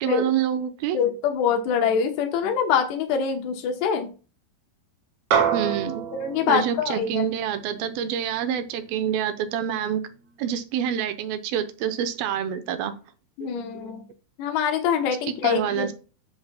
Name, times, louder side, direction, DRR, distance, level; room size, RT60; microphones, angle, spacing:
voice 1, 0.0-1.0 5.5-6.0 6.5-10.0 10.4-12.9 13.4-14.0 15.4-15.9, right 9 dB, 75° right, 10 dB, 2.4 m, -27 dB
voice 2, 0.9-4.1 6.1-7.3 13.4-14.1 14.4-15.9, left 7 dB, 80° left, 5 dB, 3.2 m, -24 dB
sound 1, 5.3-9.9, right 7 dB, 60° right, 2.2 m, -29 dB
11.5 x 7.0 x 2.2 m, 0.35 s
omnidirectional pair, 4.8 m